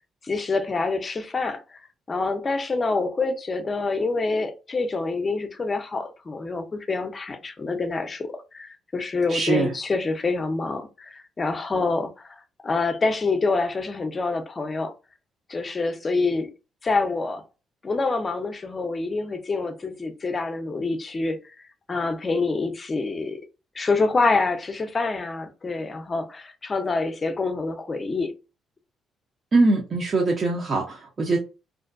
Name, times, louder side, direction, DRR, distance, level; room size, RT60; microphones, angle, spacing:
voice 1, 0.2-1.8 2.1-8.3 8.5-12.4 12.6-14.9 15.5-16.5 16.8-17.4 17.8-23.4 23.8-28.3, left 3 dB, 30° left, 0.5 m, -26 dB
voice 2, 9.3-9.7 29.5-31.4, right 3 dB, 45° right, 0.6 m, -22 dB
2.5 x 2.1 x 2.4 m
cardioid pair, 90°, 0 cm